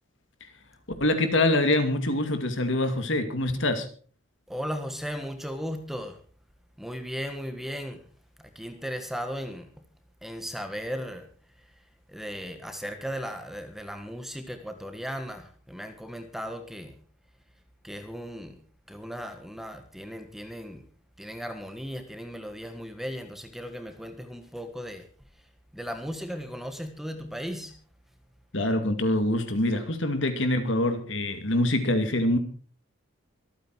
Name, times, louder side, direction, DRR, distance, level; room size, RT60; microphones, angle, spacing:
voice 1, 1.0-3.9 28.5-32.4, left 1 dB, 60° left, 8 dB, 2.4 m, -25 dB
voice 2, 4.5-6.2 6.8-8.0 8.5-9.7 10.2-11.3 12.1-16.9 17.8-18.6 18.9-20.8 21.2-25.1 25.7-27.7, equal, ahead, 7 dB, 1.5 m, -36 dB
24.5 x 9.1 x 4.6 m, 0.42 s
head